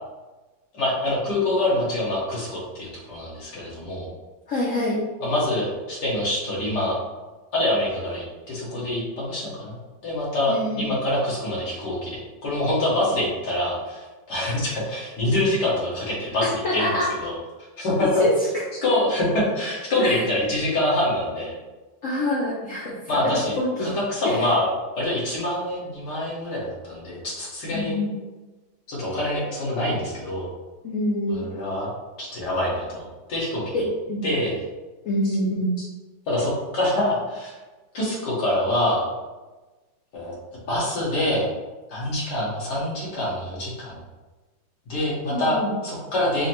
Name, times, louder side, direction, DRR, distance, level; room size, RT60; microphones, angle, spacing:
voice 1, 0.7-4.1 5.2-7.0 7.5-9.8 10.0-16.9 17.2-17.4 17.8-18.2 18.8-21.6 23.1-23.5 23.8-24.7 25.0-27.9 28.9-30.5 31.3-31.9 32.2-33.6 34.2-34.5 35.2-35.4 36.3-37.6 37.9-39.0 40.1-40.3 40.7-41.5 41.9-44.0 44.9-46.5, left 1 dB, 65° left, -6 dB, 1.8 m, -25 dB
voice 2, 4.5-5.0 10.5-10.9 16.4-17.1 18.0-18.3 20.0-20.2 22.0-22.9 23.2-23.9 24.2-24.4 27.7-28.1 30.8-31.4 33.7-34.3 35.1-35.8 45.3-45.7, left 1 dB, 80° left, -4 dB, 0.7 m, -26 dB
5.6 x 2.1 x 2.9 m, 1.2 s
omnidirectional pair, 2.1 m